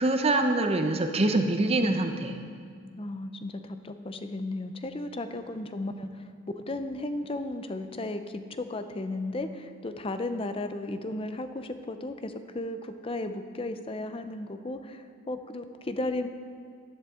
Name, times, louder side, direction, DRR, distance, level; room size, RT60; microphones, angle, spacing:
voice 1, 0.0-2.4, right 2 dB, 30° right, 6 dB, 0.7 m, -25 dB
voice 2, 3.0-6.3 6.6-16.3, left 2 dB, 25° left, 9 dB, 0.5 m, -35 dB
15.0 x 11.0 x 3.7 m, 2.1 s
head